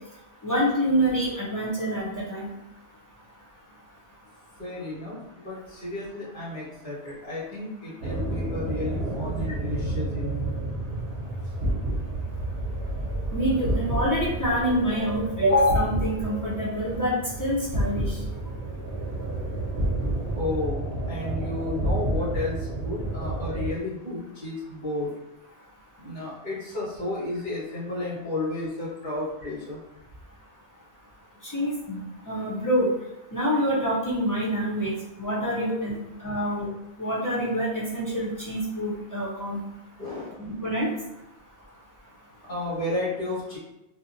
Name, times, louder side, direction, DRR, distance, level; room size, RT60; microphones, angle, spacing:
voice 1, 0.4-2.5 13.3-18.2 31.4-32.9 33.3-36.7 37.0-39.6 40.6-40.9, equal, 30° left, -7 dB, 0.3 m, -26 dB
voice 2, 4.6-10.5 20.3-25.1 26.0-29.8 36.3-36.4 40.0-40.4 42.5-43.6, left 2 dB, 50° left, -8 dB, 1.3 m, -32 dB
sound 1, 8.0-23.7, right 1 dB, 70° right, 0.8 m, -30 dB
2.7 x 2.1 x 2.5 m, 0.92 s
omnidirectional pair, 1.2 m